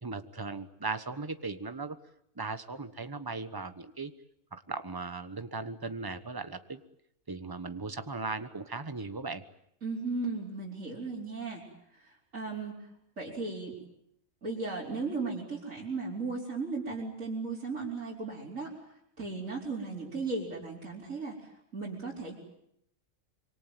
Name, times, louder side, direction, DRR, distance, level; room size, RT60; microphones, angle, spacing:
voice 1, 0.0-2.0 2.4-4.1 4.5-6.8 7.3-9.4, right 3 dB, 15° right, 10 dB, 1.2 m, -37 dB
voice 2, 9.8-11.7 11.9-12.9 13.2-13.8 14.4-18.8 19.2-21.4 21.7-22.3, right 3 dB, 70° right, -5 dB, 5.1 m, -36 dB
26.5 x 24.5 x 9.2 m, 0.74 s
omnidirectional pair, 1.4 m